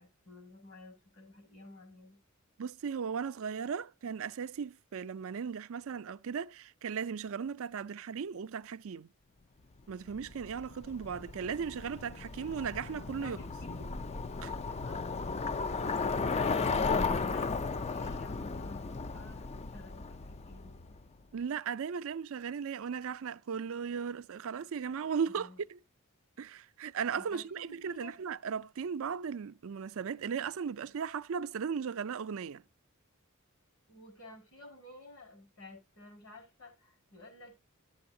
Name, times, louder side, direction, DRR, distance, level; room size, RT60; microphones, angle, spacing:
voice 1, 0.0-2.2 13.1-14.0 14.4-18.8 19.1-20.8 25.3-25.6 27.1-28.1 33.9-37.6, left 1 dB, 65° left, 5.1 m, -53 dB
voice 2, 2.6-9.1 9.9-13.4 14.4-14.5 21.3-25.8 26.4-32.6, right 6 dB, 65° right, 0.4 m, -37 dB
Bicycle, 10.1-21.0, left 4 dB, 30° left, 0.4 m, -35 dB
12.5 x 7.8 x 2.6 m
head